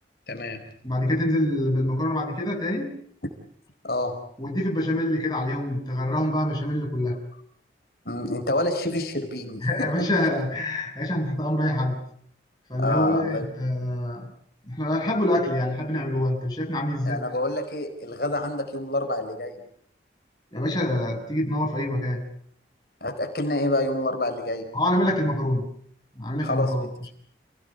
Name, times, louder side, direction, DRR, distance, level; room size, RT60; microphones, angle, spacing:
voice 1, 0.3-0.6 3.8-4.2 8.0-9.9 12.8-13.5 17.0-19.6 23.0-24.7 26.4-27.1, left 1 dB, 60° left, 5 dB, 4.9 m, -28 dB
voice 2, 0.8-2.9 4.4-7.2 9.6-12.1 12.7-14.3 14.7-17.2 20.5-22.3 24.7-25.7 26.2-27.1, left 1 dB, 25° left, 1 dB, 6.4 m, -26 dB
30.0 x 18.0 x 8.2 m, 0.63 s
head